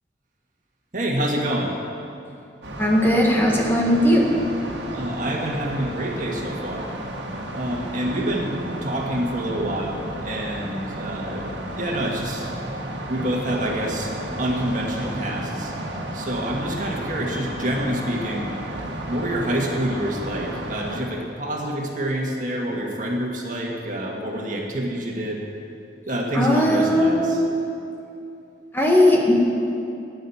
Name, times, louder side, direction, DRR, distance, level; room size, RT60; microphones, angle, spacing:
voice 1, 0.9-1.7 4.9-6.9 7.5-8.5 8.8-11.5 11.8-12.5 13.1-14.1 14.4-15.7 16.1-18.5 19.1-25.4 26.1-27.4, right 1 dB, 45° right, -1 dB, 1.9 m, -27 dB
sound 1, 2.6-21.0, right 1 dB, 85° right, 1.8 m, -33 dB
voice 2, 2.8-4.2 26.3-27.6 28.7-29.4, left 1 dB, 10° left, -2 dB, 1.7 m, -18 dB
14.5 x 9.8 x 7.2 m, 2.6 s
head